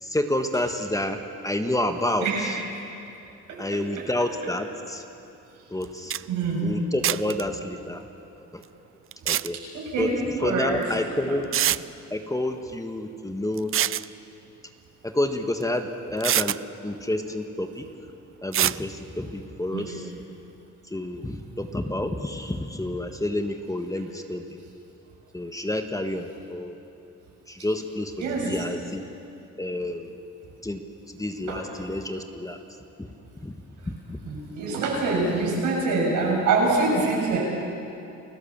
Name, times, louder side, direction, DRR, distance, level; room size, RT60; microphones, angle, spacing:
voice 1, 0.0-2.6 3.6-5.0 5.7-6.2 6.6-8.1 8.5-8.6 9.2-9.6 10.0-10.1 10.4-11.6 12.1-13.7 15.0-17.9 18.4-20.2 20.9-24.6 25.3-26.7 27.5-29.0 29.6-30.1 30.6-30.8 31.2-32.6 33.0-33.1 33.4-33.5 33.8-34.2, left 1 dB, 10° left, 6 dB, 1.5 m, -29 dB
voice 2, 2.2-2.5 6.3-6.7 9.7-10.1 10.4-10.8 11.3-11.4 19.7-19.8 28.2-28.6 31.5-31.6 34.2-37.4, right 3 dB, 85° right, -3 dB, 7.4 m, -25 dB
sound 1, 5.8-5.9 6.1-6.2 7.0-7.4 9.1-9.5 10.8-10.9 11.5-11.8 13.6-14.1 15.6-15.7 16.2-16.6 18.5-18.8, right 11 dB, 45° right, 0.5 m, -24 dB
29.0 x 16.0 x 7.3 m, 2.8 s
cardioid pair, 90°, 30 cm